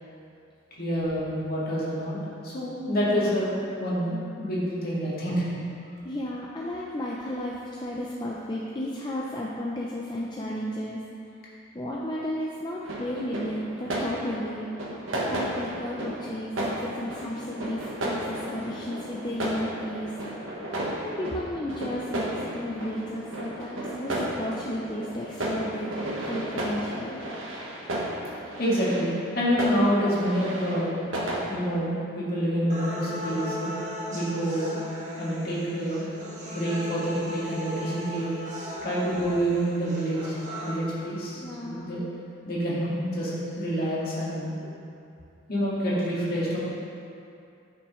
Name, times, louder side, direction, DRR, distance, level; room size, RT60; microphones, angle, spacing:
voice 1, 0.8-5.5 28.4-30.9 31.5-33.7 34.1-36.1 36.5-38.3 38.8-40.4 40.6-42.0 42.5-44.7 45.5-46.6, equal, 45° left, -8 dB, 1.9 m, -27 dB
voice 2, 3.0-3.3 6.0-11.0 11.7-14.7 15.3-20.1 21.0-25.9 26.3-27.2 41.4-41.9, left 1 dB, 20° left, -4 dB, 0.4 m, -33 dB
sound 1, 12.8-31.4, right 1 dB, 75° right, 1.2 m, -33 dB
sound 2, 32.7-40.7, equal, 35° right, 1.6 m, -37 dB
9.8 x 6.0 x 3.1 m, 2.6 s
head